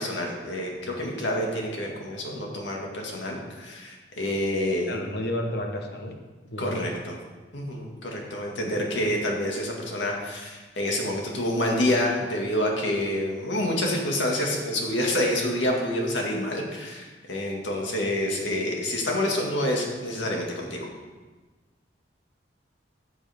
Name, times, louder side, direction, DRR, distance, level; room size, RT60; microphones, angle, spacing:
voice 1, 0.0-4.9 6.6-7.2 7.5-20.9, left 1 dB, 80° left, -1 dB, 2.0 m, -28 dB
voice 2, 4.9-6.2 6.5-6.9, left 1 dB, 55° left, 3 dB, 1.2 m, -31 dB
14.0 x 7.1 x 3.6 m, 1.3 s
head